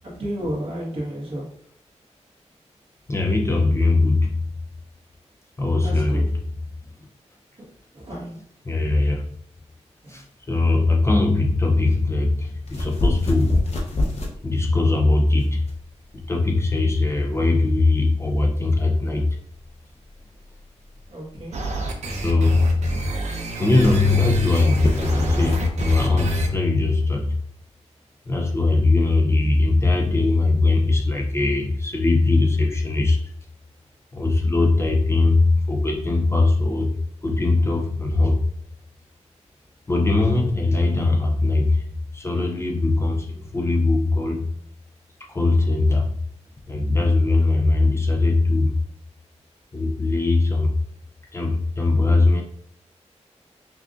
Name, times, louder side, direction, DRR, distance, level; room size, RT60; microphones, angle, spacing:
voice 1, 0.0-1.5 5.8-6.2 7.9-8.4 10.0-10.2 21.1-21.6, right 1 dB, 50° right, -5 dB, 1.4 m, -32 dB
voice 2, 3.1-4.4 5.6-6.3 8.7-9.2 10.1-13.7 14.4-15.6 16.1-19.3 22.2-23.1 23.6-27.4 28.3-33.2 34.1-36.9 37.2-38.4 39.9-41.8 42.1-44.5 45.2-46.1 46.7-48.8 49.7-50.7 51.3-52.4, left 2 dB, 20° left, 1 dB, 0.4 m, -20 dB
sound 1, 12.6-25.7, left 1 dB, 60° left, 0.9 m, -31 dB
sound 2, 21.5-26.5, right 2 dB, 70° right, 0.7 m, -29 dB
5.8 x 2.5 x 2.4 m, 0.67 s
wide cardioid pair, 170°, 12 cm